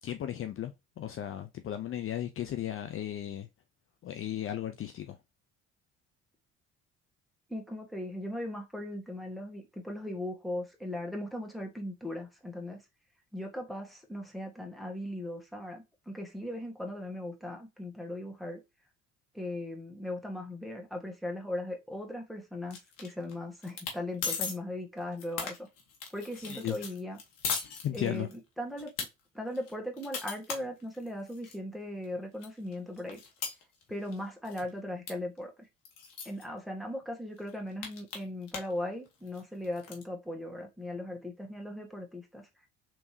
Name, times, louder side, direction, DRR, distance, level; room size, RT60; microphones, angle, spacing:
voice 1, 0.0-3.5 4.0-5.2 26.5-26.8 27.8-28.3, left 11 dB, 40° left, 0.5 m, -35 dB
voice 2, 7.5-12.8 13.3-18.6 19.3-25.6 26.1-27.2 27.9-28.9 29.3-33.2 33.9-35.5 36.2-42.5, left 1 dB, ahead, 1.4 m, -38 dB
sound 1, 22.7-23.3 23.6-24.0 24.2-24.5 25.0-28.4 28.8-29.1 29.5-31.6 32.0-32.1 32.4-34.2 34.4-34.7 35.1-35.2 35.4-35.5 35.8-36.4 37.0-37.1 37.4-38.8 39.1-40.0, left 5 dB, 75° left, 1.3 m, -38 dB
3.4 x 3.0 x 2.7 m
hypercardioid pair, 60°, 33 cm